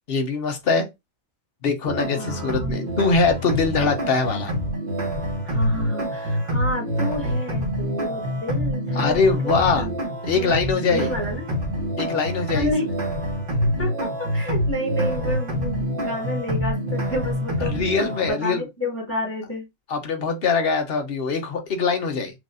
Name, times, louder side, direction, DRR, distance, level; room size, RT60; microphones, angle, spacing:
voice 1, 0.1-0.9 1.6-4.5 9.0-9.9 10.2-11.1 12.0-12.7 17.6-18.6 19.9-22.3, left 4 dB, 50° left, 1.0 m, -22 dB
sound 1, 1.8-18.3, equal, 45° right, 1.2 m, -26 dB
voice 2, 2.1-2.9 5.4-9.9 10.3-10.5 10.9-11.5 12.5-12.8 13.8-17.9 18.2-19.6, left 1 dB, 10° left, 1.5 m, -30 dB
6.2 x 2.5 x 2.6 m
omnidirectional pair, 1.4 m